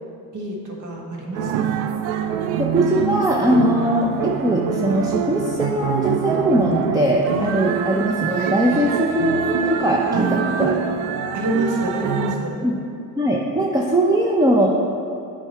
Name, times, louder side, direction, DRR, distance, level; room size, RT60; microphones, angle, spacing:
voice 1, 0.3-1.9 10.1-10.4 11.3-12.6, right 1 dB, 45° right, -1 dB, 1.6 m, -27 dB
sound 1, 1.3-12.4, right 7 dB, 90° right, 0.5 m, -25 dB
voice 2, 2.6-10.8 12.6-12.8 13.2-14.7, right 1 dB, 10° right, -3 dB, 0.7 m, -20 dB
7.7 x 4.7 x 4.4 m, 2.7 s
supercardioid pair, 75°, 43 cm